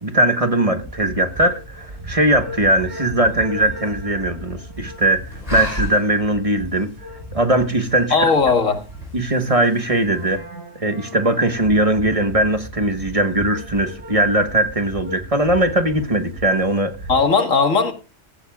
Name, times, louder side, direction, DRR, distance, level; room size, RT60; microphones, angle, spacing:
voice 1, 0.0-6.9 7.3-8.3 9.1-10.4 10.8-16.9, right 1 dB, 30° right, 1.3 m, -19 dB
sound 1, 0.8-17.3, equal, 85° right, 6.3 m, -37 dB
sound 2, 1.3-10.4, equal, 30° left, 5.1 m, -37 dB
voice 2, 8.1-8.8 17.1-17.9, left 4 dB, 90° left, 2.2 m, -17 dB
16.5 x 15.5 x 2.4 m
omnidirectional pair, 1.3 m